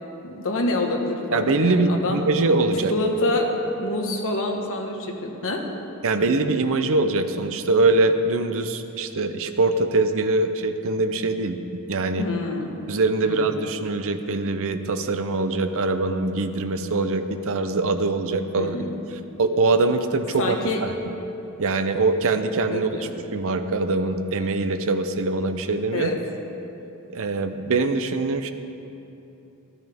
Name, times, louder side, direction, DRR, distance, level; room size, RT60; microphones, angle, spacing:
voice 1, 0.2-2.2 2.9-3.5 3.8-5.6 12.2-12.7 13.2-13.5 18.6-18.9 20.4-20.8 22.7-23.1 25.9-26.2, left 2 dB, 65° left, 2 dB, 1.3 m, -26 dB
voice 2, 1.3-2.9 6.0-11.6 11.9-12.3 12.9-18.8 19.4-20.6 20.8-20.9 21.6-22.9 23.3-26.1 27.1-28.5, right 3 dB, 65° right, 9 dB, 0.6 m, -23 dB
13.5 x 12.5 x 3.5 m, 2.9 s
head